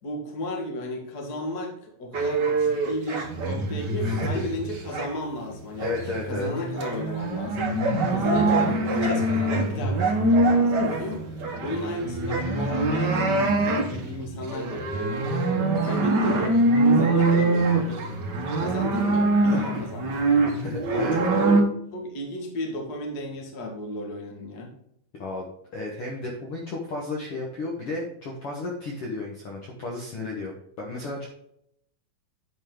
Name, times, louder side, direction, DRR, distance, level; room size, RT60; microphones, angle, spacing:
voice 1, 0.0-5.9 6.2-7.7 8.1-11.2 11.6-15.2 15.8-16.6 16.8-18.2 18.6-20.4 20.9-21.3 21.9-24.7, left 1 dB, 35° left, 1 dB, 1.8 m, -34 dB
sound 1, 2.1-5.2 5.5-21.6, right 2 dB, 80° right, 0.9 m, -24 dB
voice 2, 4.0-4.4 5.8-6.5 20.6-21.2 25.2-25.5 25.7-31.3, left 2 dB, 55° left, -1 dB, 1.8 m, -33 dB
10.0 x 5.4 x 3.8 m, 0.73 s
omnidirectional pair, 3.7 m